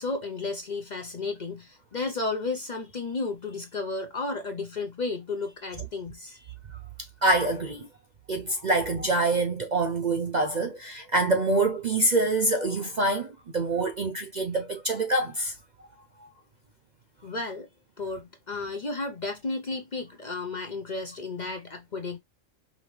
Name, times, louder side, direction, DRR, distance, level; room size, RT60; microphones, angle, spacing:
voice 1, 0.0-6.5 17.2-17.7 18.0-22.2, left 3 dB, 45° left, 0.7 m, -33 dB
voice 2, 7.2-7.9 8.3-15.5 16.2-16.3, right 2 dB, 45° right, 0.6 m, -25 dB
5.1 x 2.7 x 3.2 m
omnidirectional pair, 1.3 m